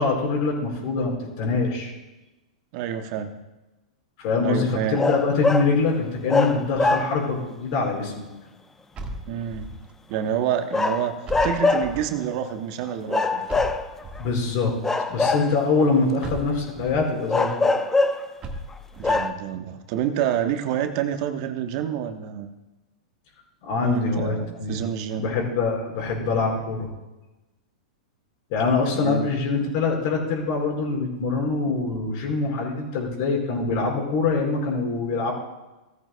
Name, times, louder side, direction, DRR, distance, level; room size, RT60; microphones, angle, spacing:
voice 1, 0.0-1.9 4.2-8.2 14.2-14.7 15.1-17.7 23.6-24.8 25.2-26.9 28.5-35.3, left 4 dB, 50° left, -1 dB, 4.9 m, -24 dB
voice 2, 2.7-3.3 4.4-5.0 9.3-9.7 10.1-11.1 11.4-13.5 19.0-22.5 23.8-25.3 28.9-29.3, right 10 dB, 50° right, 7 dB, 1.1 m, -28 dB
sound 1, 4.9-5.8 6.3-7.4 10.7-12.0 13.1-14.2 14.8-15.8 17.3-18.3 18.7-18.8 19.0-19.3, left 3 dB, 10° left, 0.8 m, -23 dB
sound 2, 8.9-9.9 11.3-12.2 13.5-14.4 16.2-17.1 18.4-19.3, right 1 dB, 25° right, 1.6 m, -37 dB
17.0 x 13.5 x 2.2 m, 1.1 s
hypercardioid pair, 105°, 4 cm